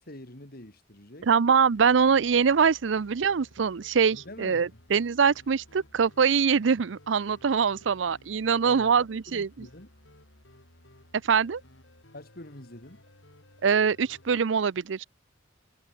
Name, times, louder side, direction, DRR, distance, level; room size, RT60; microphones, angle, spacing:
voice 1, 0.0-1.3 4.1-4.8 7.9-8.0 8.6-9.9 12.1-13.0, left 1 dB, 55° left, 4.5 m, -46 dB
voice 2, 1.2-9.7 11.2-11.6 13.6-15.0, right 6 dB, 75° right, 0.5 m, -23 dB
sound 1, 1.7-14.4, left 1 dB, 75° left, 7.9 m, -56 dB
head